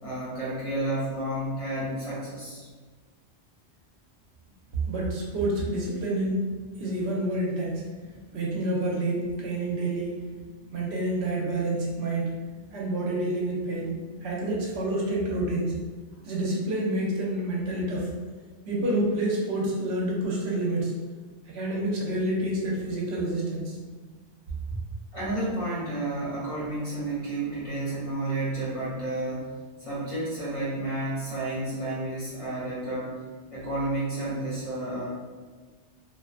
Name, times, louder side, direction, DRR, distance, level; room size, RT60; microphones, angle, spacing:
voice 1, 0.0-2.7 25.1-29.5 29.8-33.2 33.5-35.1, right 1 dB, 35° left, -9 dB, 0.6 m, -31 dB
voice 2, 4.7-10.3 10.7-15.8 16.2-18.1 18.6-20.9 21.4-23.8, right 1 dB, 70° right, -3 dB, 0.8 m, -28 dB
2.4 x 2.3 x 2.3 m, 1.4 s
omnidirectional pair, 1.2 m